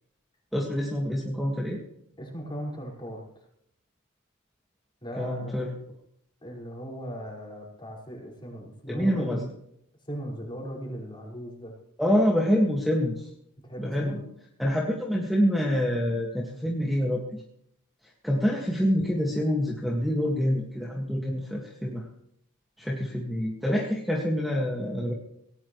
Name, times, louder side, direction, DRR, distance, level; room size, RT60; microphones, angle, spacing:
voice 1, 0.5-1.8 5.2-5.7 8.9-9.4 12.0-13.3 13.8-14.2 14.6-17.2 18.2-22.0 22.8-25.1, equal, ahead, -1 dB, 1.9 m, -26 dB
voice 2, 2.2-3.2 5.0-5.6 6.4-9.5 10.1-11.7 13.7-14.2, equal, 20° left, -1 dB, 5.3 m, -38 dB
19.0 x 18.0 x 3.2 m, 0.73 s
head